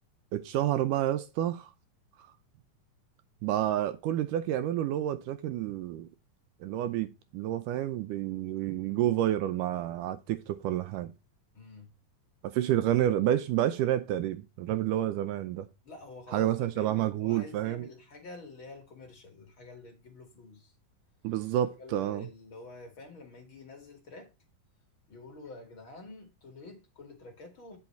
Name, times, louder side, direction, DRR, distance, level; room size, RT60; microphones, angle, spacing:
voice 1, 0.3-1.7 3.4-6.1 6.6-11.1 12.4-15.7 16.3-17.9 21.2-22.3, right 12 dB, 80° right, 2.1 m, -29 dB
voice 2, 11.5-11.9 15.8-20.7 21.8-24.3 25.1-27.8, left 3 dB, 40° left, 2.7 m, -48 dB
9.7 x 5.6 x 4.5 m
omnidirectional pair, 4.0 m